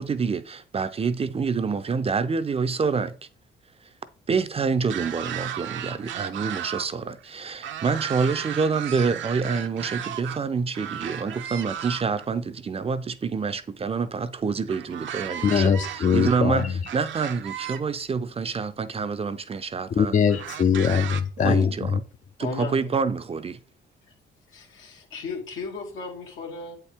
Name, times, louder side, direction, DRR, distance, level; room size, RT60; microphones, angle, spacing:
voice 1, 0.0-3.2 3.8-3.9 4.3-20.2 21.4-22.0 22.4-23.6, right 5 dB, 30° right, 0.5 m, -27 dB
sound 1, 4.8-6.9 7.2-10.4 10.7-12.3 14.7-17.8 18.7-18.8 20.3-21.2, right 10 dB, 70° right, 0.6 m, -35 dB
voice 2, 15.4-16.6 20.0-21.7, left 7 dB, 40° left, 0.4 m, -21 dB
voice 3, 22.4-23.0 24.5-26.8, left 4 dB, 85° left, 1.8 m, -35 dB
7.8 x 4.4 x 3.5 m
cardioid pair, 90°, 20 cm